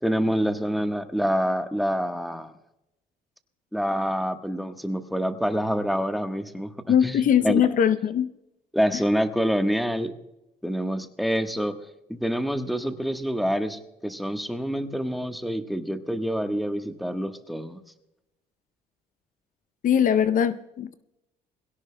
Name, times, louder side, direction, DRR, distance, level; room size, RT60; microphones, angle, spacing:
voice 1, 0.0-2.5 3.7-6.7 7.0-7.6 8.7-10.1 10.6-11.8 12.1-17.8, equal, ahead, 1.3 m, -26 dB
voice 2, 6.9-8.3 19.8-20.9, left 9 dB, 50° left, 0.6 m, -21 dB
21.5 x 17.0 x 2.2 m
cardioid pair, 110°, 17 cm